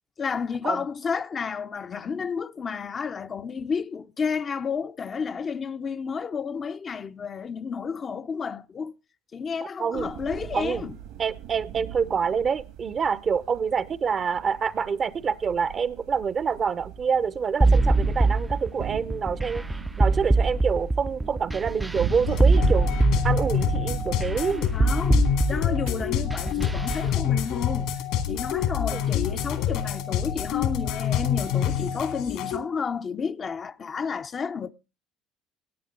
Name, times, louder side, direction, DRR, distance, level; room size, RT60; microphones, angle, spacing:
voice 1, 0.2-8.9 9.3-10.9 24.7-28.0 28.3-34.7, left 6 dB, 35° left, 0.7 m, -31 dB
sound 1, 9.9-26.9, right 10 dB, 70° right, 1.9 m, -38 dB
voice 2, 11.2-22.9 23.2-24.7 28.9-29.0, right 6 dB, 40° right, 0.8 m, -27 dB
sound 2, 17.6-27.1, right 2 dB, 10° right, 0.5 m, -23 dB
sound 3, 22.3-32.6, left 9 dB, 70° left, 2.3 m, -27 dB
16.5 x 9.3 x 3.8 m
hypercardioid pair, 65°, 0 cm